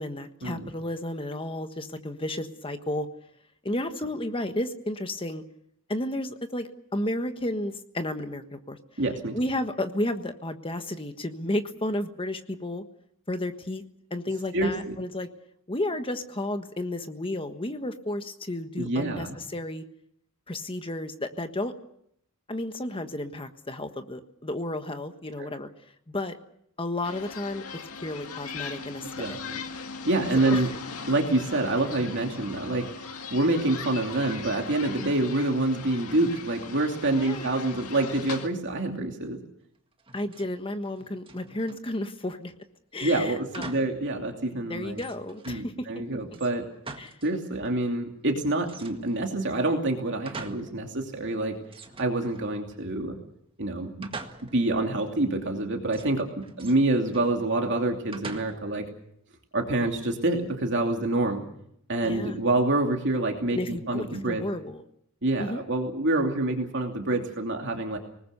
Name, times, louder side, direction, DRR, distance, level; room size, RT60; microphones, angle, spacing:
voice 1, 0.0-3.1 3.6-5.4 5.9-8.8 9.3-12.8 13.3-13.8 14.1-15.3 15.7-19.8 20.5-21.7 22.5-25.7 26.1-26.4 26.8-27.6 28.0-29.4 30.4-30.7 37.2-37.5 40.1-42.5 42.9-43.8 44.7-45.7 47.0-47.1 62.0-62.4 63.5-64.8 65.4-65.6, left 1 dB, 25° left, 8 dB, 1.4 m, -32 dB
voice 2, 9.0-9.4 14.5-15.0 18.8-19.4 25.4-25.5 29.2-29.6 30.1-30.7 31.1-32.9 33.3-39.4 43.0-45.0 45.5-46.6 47.2-51.6 52.0-53.2 53.6-54.1 54.5-58.9 59.5-61.4 61.9-64.4 65.2-68.0, right 2 dB, 55° right, 2 dB, 2.7 m, -27 dB
sound 1, 27.0-38.5, left 5 dB, 85° left, 2.0 m, -39 dB
sound 2, 40.0-40.6 40.8-41.9 43.5-44.0 44.4-44.5 44.9-45.6 46.3-47.4 47.6-47.7 48.7-49.3 49.8-50.8 51.1-51.2 51.7-52.8 54.0-54.7 55.9-57.3 58.1-58.8, right 3 dB, 25° right, 1.7 m, -44 dB
25.5 x 19.5 x 6.8 m, 0.71 s
head